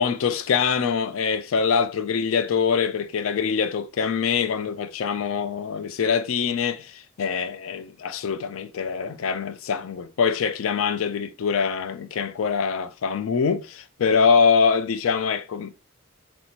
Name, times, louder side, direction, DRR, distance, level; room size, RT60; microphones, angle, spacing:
voice 1, 0.0-15.7, left 6 dB, 70° left, 0.4 m, -24 dB
4.3 x 4.2 x 2.8 m
head